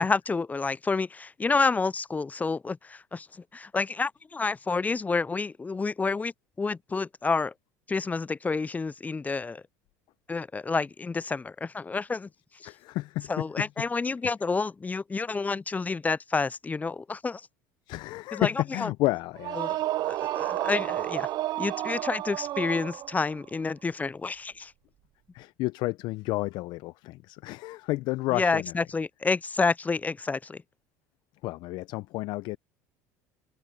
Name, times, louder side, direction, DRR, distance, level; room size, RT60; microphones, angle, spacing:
voice 1, 0.0-3.3 3.5-6.3 6.6-7.5 7.9-9.6 10.3-12.3 13.3-17.4 18.3-18.5 18.8-18.9 19.6-19.8 20.1-21.3 21.6-24.7 28.3-30.6, left 4 dB, 20° left, 0.5 m, -29 dB
voice 2, 12.6-13.9 14.2-14.3 17.9-19.8 20.1-20.2 25.3-28.8 31.4-32.6, left 19 dB, 65° left, 0.7 m, -31 dB
sound 1, 19.4-23.3, right 15 dB, 55° right, 0.7 m, -31 dB
open air
hypercardioid pair, 75°, 8 cm